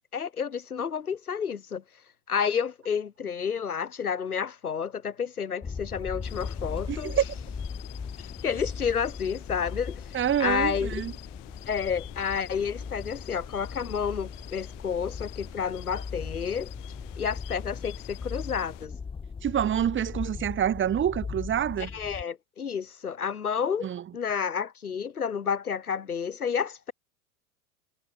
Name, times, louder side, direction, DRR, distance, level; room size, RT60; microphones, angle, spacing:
voice 1, 0.1-1.8 2.3-7.2 8.2-11.0 11.7-16.7 17.2-18.9 21.9-26.9, left 7 dB, 80° left, 2.0 m, -30 dB
sound 1, 5.6-22.2, left 5 dB, 10° left, 1.2 m, -38 dB
sound 2, 6.2-18.9, left 24 dB, 55° left, 8.0 m, -48 dB
voice 2, 6.9-7.2 10.1-11.1 19.4-21.9 23.8-24.0, right 10 dB, 25° right, 2.5 m, -27 dB
figure-of-eight pair, 85°, 43 cm